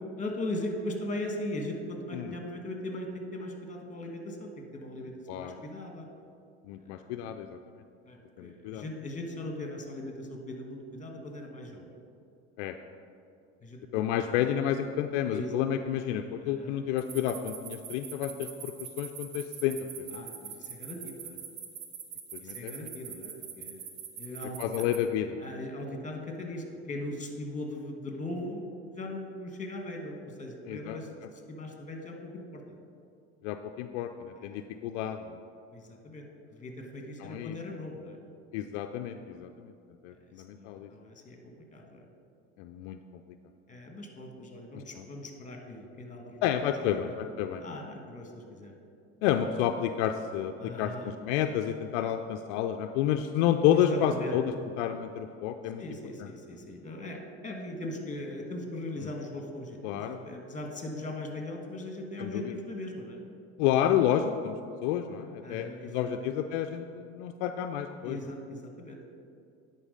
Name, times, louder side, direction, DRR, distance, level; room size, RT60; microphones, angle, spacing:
voice 1, 0.2-6.1 6.8-7.1 8.0-12.0 13.6-14.0 15.3-15.6 16.4-16.7 20.1-21.4 22.4-23.8 24.2-24.7 25.4-32.6 34.4-34.6 35.7-38.2 40.2-42.0 43.7-46.4 46.8-47.2 47.6-48.7 50.6-51.0 53.8-54.3 55.8-63.2 65.4-66.3 68.0-69.0, left 1 dB, 20° left, 3 dB, 1.5 m, -39 dB
voice 2, 6.6-7.5 8.4-8.8 12.6-12.8 13.9-20.2 22.3-22.7 24.6-25.5 30.7-31.0 33.4-35.4 37.2-37.6 38.5-39.7 40.0-40.9 42.6-43.0 44.7-45.1 46.4-47.6 49.2-55.8 59.8-60.2 62.2-62.6 63.6-64.6 64.8-68.2, left 10 dB, 70° left, 7 dB, 0.5 m, -30 dB
sound 1, 17.0-25.0, right 8 dB, 70° right, 1.1 m, -42 dB
9.9 x 4.5 x 5.2 m, 2.4 s
hypercardioid pair, 75°, 36 cm